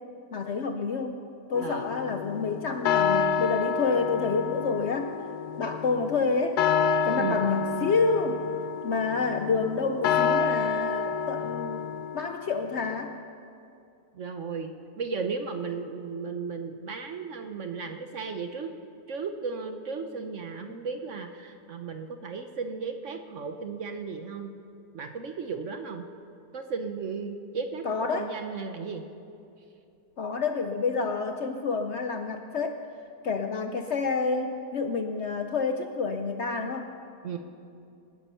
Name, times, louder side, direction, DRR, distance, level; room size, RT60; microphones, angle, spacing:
voice 1, 0.3-1.2 1.5-5.1 5.6-6.6 7.0-8.4 8.8-13.1 27.8-28.3 30.2-32.8 33.2-36.9, left 4 dB, 55° left, 5 dB, 0.8 m, -28 dB
sound 1, 1.5-12.7, left 7 dB, 75° left, 1.2 m, -29 dB
voice 2, 7.2-7.5 14.1-14.7 15.0-18.7 19.1-24.5 24.9-26.0 26.5-29.0 37.2-37.4, right 5 dB, 55° right, 6 dB, 1.0 m, -35 dB
25.5 x 9.8 x 5.6 m, 2.6 s
omnidirectional pair, 1.8 m